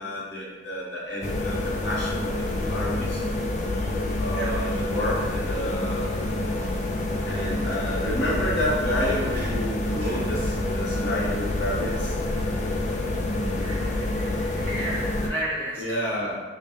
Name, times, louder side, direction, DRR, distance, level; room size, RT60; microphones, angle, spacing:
voice 1, 0.0-3.2 4.2-6.2 7.2-12.2 15.8-16.4, equal, 65° left, -6 dB, 1.0 m, -30 dB
sound 1, 1.2-15.3, left 1 dB, 35° left, 0.3 m, -27 dB
voice 2, 14.2-15.8, right 1 dB, 15° left, -8 dB, 0.7 m, -33 dB
3.8 x 2.1 x 3.5 m, 1.3 s
head